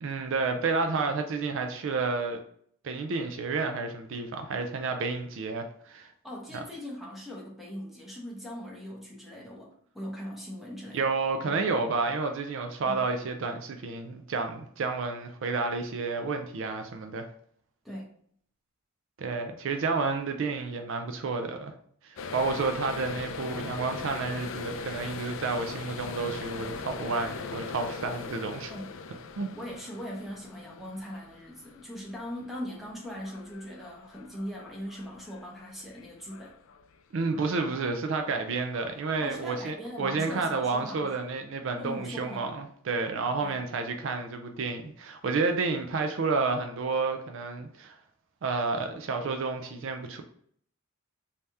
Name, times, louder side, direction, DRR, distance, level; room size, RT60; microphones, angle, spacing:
voice 1, 0.0-2.4 2.8-6.1 10.9-17.3 19.2-21.7 22.0-28.7 29.4-29.5 37.1-48.0 48.4-50.2, right 4 dB, 60° right, 6 dB, 0.4 m, -30 dB
voice 2, 6.2-11.0 11.4-11.5 12.8-13.1 17.8-18.1 28.7-28.9 29.5-36.6 37.3-37.5 39.2-41.1 41.8-42.5 43.4-43.6, equal, ahead, -3 dB, 0.8 m, -40 dB
sound 1, 22.2-36.9 37.3-37.7 38.1-39.4, left 5 dB, 60° left, 0.3 m, -41 dB
3.3 x 2.8 x 3.4 m, 0.62 s
head